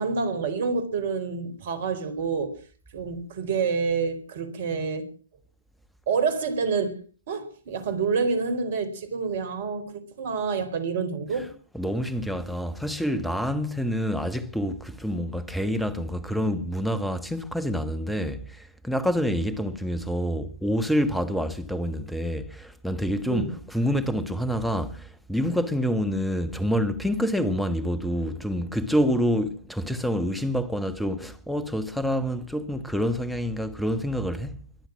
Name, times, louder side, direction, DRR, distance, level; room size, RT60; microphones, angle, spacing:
voice 1, 0.0-2.5 2.9-5.1 6.1-7.0 7.3-11.5 23.3-23.5, right 5 dB, 50° right, 4.2 m, -28 dB
voice 2, 11.7-34.7, equal, ahead, 1.3 m, -27 dB
23.5 x 7.9 x 7.4 m
figure-of-eight pair, 120°, 0 cm